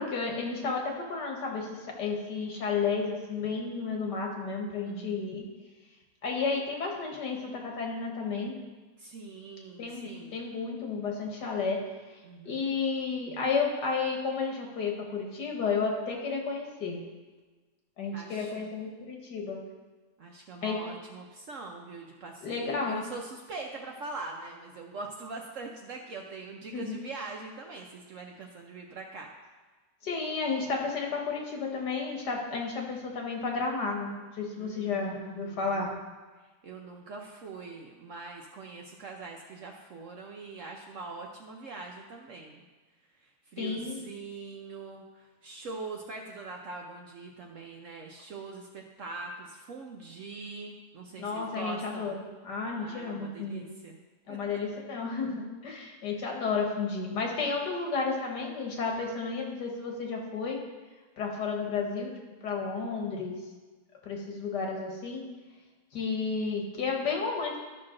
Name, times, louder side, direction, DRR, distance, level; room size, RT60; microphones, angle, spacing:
voice 1, 0.0-5.5 6.2-8.6 9.8-11.8 12.1-12.2 12.4-17.0 18.0-19.6 20.6-20.8 22.4-23.0 26.7-27.0 30.0-35.9 43.6-44.0 51.2-53.7 54.3-60.6 61.2-62.1 62.4-63.4 64.0-65.3 65.9-67.6, left 4 dB, 85° left, 0 dB, 2.0 m, -32 dB
voice 2, 4.8-5.2 9.0-10.4 12.2-12.7 18.1-18.7 20.2-29.3 34.6-35.7 36.6-42.7 43.2-52.2 52.8-54.0 54.3-54.6, right 3 dB, 60° right, 1 dB, 1.0 m, -43 dB
12.0 x 5.9 x 3.8 m, 1.3 s
omnidirectional pair, 1.8 m